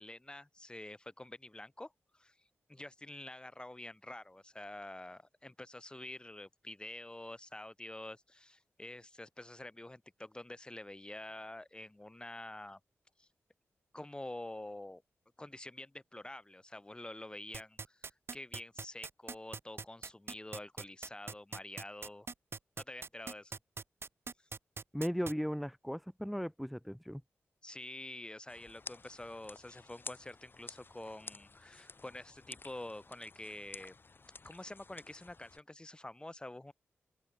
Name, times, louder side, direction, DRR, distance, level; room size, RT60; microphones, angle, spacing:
voice 1, 0.0-2.3 2.7-12.8 13.2-13.3 13.9-15.0 15.4-18.0 18.3-22.3 22.8-23.5 27.6-33.9 34.4-36.7, left 1 dB, 20° left, 2.7 m, -47 dB
sound 1, 17.5-25.3, right 4 dB, 55° right, 1.4 m, -42 dB
voice 2, 24.9-27.2, equal, ahead, 1.7 m, -37 dB
sound 2, 28.5-35.6, left 4 dB, 45° left, 3.0 m, -52 dB
open air
cardioid pair, 55°, 5 cm